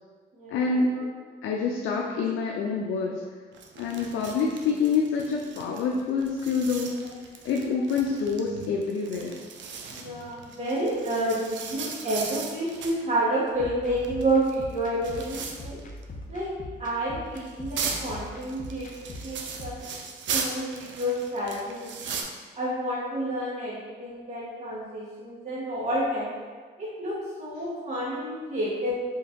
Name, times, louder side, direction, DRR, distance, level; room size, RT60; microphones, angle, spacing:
voice 1, 0.5-1.0 1.4-3.2 3.8-7.0 7.4-9.4, left 5 dB, 85° left, 0 dB, 0.4 m, -27 dB
sound 1, 3.5-13.0 13.8-16.0 16.3-16.4 17.3-22.2, right 5 dB, 70° right, 0.5 m, -37 dB
voice 2, 9.9-15.8 16.3-16.5 16.8-19.8 20.3-22.0 22.5-26.3 26.8-28.9, right 1 dB, 35° right, -8 dB, 1.2 m, -29 dB
sound 2, 13.5-19.8, left 1 dB, 40° left, 0.7 m, -42 dB
4.6 x 2.6 x 3.6 m, 1.5 s
cardioid pair, 90°, 20 cm